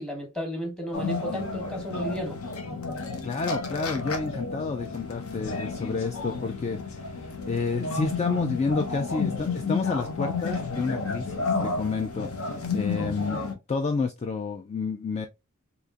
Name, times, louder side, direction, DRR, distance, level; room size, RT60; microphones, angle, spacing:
voice 1, 0.0-2.4, equal, 5° left, 1.2 m, -33 dB
sound 1, 0.9-13.5, left 4 dB, 70° left, 0.8 m, -31 dB
voice 2, 3.2-13.4 13.7-15.3, left 4 dB, 30° left, 0.3 m, -30 dB
4.2 x 2.8 x 2.3 m
head